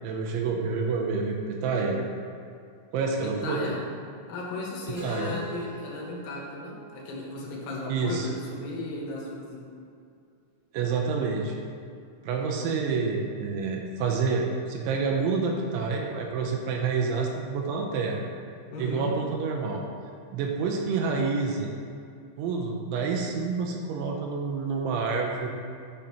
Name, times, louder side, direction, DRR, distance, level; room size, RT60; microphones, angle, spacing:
voice 1, 0.0-2.0 2.9-3.6 5.0-5.4 7.9-8.3 10.7-11.5 12.2-18.2 18.8-19.8 20.3-21.7 22.4-25.5, right 4 dB, 85° right, 0 dB, 2.9 m, -28 dB
voice 2, 3.2-3.8 4.3-9.7 18.7-19.1, left 2 dB, 80° left, -3 dB, 3.4 m, -35 dB
Keyboard (musical), 5.0-8.9, right 6 dB, 55° right, 1.9 m, -46 dB
10.0 x 6.4 x 2.9 m, 2.3 s
omnidirectional pair, 5.5 m